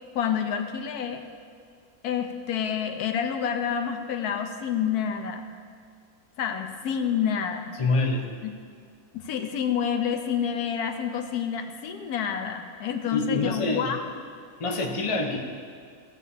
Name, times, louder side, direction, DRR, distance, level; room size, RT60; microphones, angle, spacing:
voice 1, 0.1-1.2 2.0-5.5 6.4-7.7 8.4-8.5 9.1-14.2, left 8 dB, 85° left, 5 dB, 1.2 m, -28 dB
voice 2, 7.8-8.2 13.1-13.9 14.6-15.4, left 3 dB, 30° left, 1 dB, 0.7 m, -26 dB
15.5 x 7.2 x 2.7 m, 2.1 s
omnidirectional pair, 1.6 m